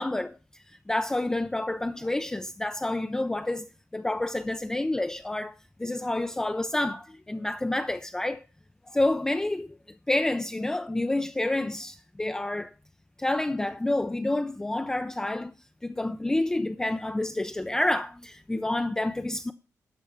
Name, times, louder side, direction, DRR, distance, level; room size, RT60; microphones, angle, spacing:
voice 1, 0.0-5.5 5.8-8.4 8.9-9.7 10.1-12.7 13.2-15.5 15.8-19.5, left 1 dB, 10° left, 0.4 m, -29 dB
12.0 x 4.3 x 7.0 m
wide cardioid pair, 135°, 6 cm